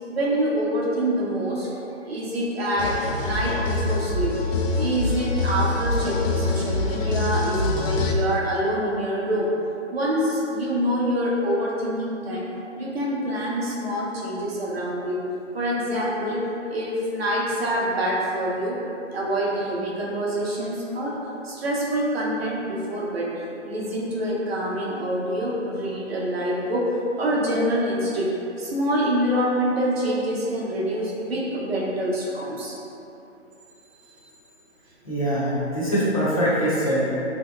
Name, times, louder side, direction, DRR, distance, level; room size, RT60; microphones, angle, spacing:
voice 1, 0.1-1.7 2.0-4.3 4.7-9.5 9.9-12.5 12.7-15.2 15.5-16.4 16.7-18.8 19.1-21.2 21.4-23.3 23.6-26.9 27.2-28.3 28.6-32.7 34.0-34.1, equal, 55° right, -5 dB, 0.7 m, -26 dB
sound 1, 2.8-8.1, left 3 dB, 85° left, 0.5 m, -25 dB
voice 2, 35.0-37.1, equal, 30° left, -9 dB, 0.5 m, -23 dB
2.9 x 2.7 x 2.3 m, 2.8 s
hypercardioid pair, 155°, 38 cm